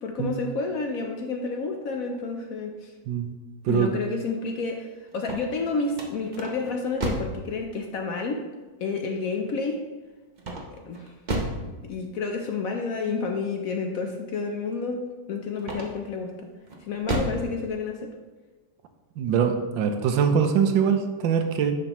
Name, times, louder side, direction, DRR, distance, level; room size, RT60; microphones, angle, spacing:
voice 1, 0.0-2.9 3.7-8.4 8.8-9.8 10.7-11.1 11.6-16.5 16.8-18.1, left 4 dB, 65° left, 4 dB, 0.9 m, -30 dB
sound 1, 5.1-7.4 10.4-11.7 15.6-16.2 16.7-17.5, right 1 dB, 35° right, 0.7 m, -31 dB
voice 2, 19.2-21.7, right 7 dB, 90° right, 7 dB, 1.4 m, -23 dB
9.7 x 5.9 x 3.0 m, 1.2 s
omnidirectional pair, 2.0 m